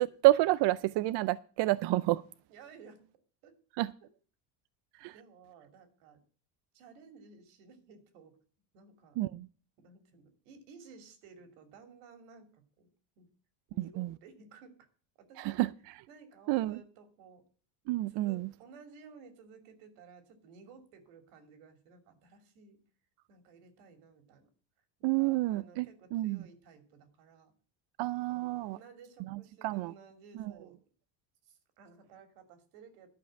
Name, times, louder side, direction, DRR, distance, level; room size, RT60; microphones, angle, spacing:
voice 1, 0.0-2.2 3.8-3.9 5.0-5.1 9.2-9.5 13.8-14.1 15.4-15.7 16.5-16.8 17.9-18.5 25.0-25.9 26.1-26.4 28.0-28.8 29.3-29.9, right 18 dB, 60° right, 0.5 m, -29 dB
voice 2, 2.5-3.1 3.4-3.6 4.0-4.1 5.1-6.2 6.7-8.4 8.7-9.2 9.8-12.9 13.2-13.3 13.7-14.8 15.2-15.7 16.1-17.4 18.1-22.8 23.3-24.5 25.0-27.5 28.3-30.8 31.4-33.1, right 5 dB, 90° right, 2.8 m, -56 dB
11.5 x 5.5 x 8.7 m
cardioid pair, 125°, 47 cm